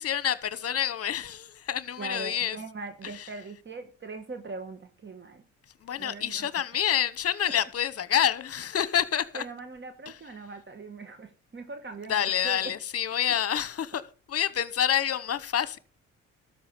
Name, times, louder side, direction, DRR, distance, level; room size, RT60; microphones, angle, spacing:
voice 1, 0.0-2.6 3.1-3.3 5.8-9.4 10.1-10.2 12.1-14.0 14.3-15.8, left 10 dB, 50° left, 1.1 m, -28 dB
voice 2, 2.0-5.4 6.0-6.5 9.3-12.7, right 3 dB, 40° right, 1.8 m, -41 dB
13.0 x 5.7 x 7.6 m
cardioid pair, 90°, 30 cm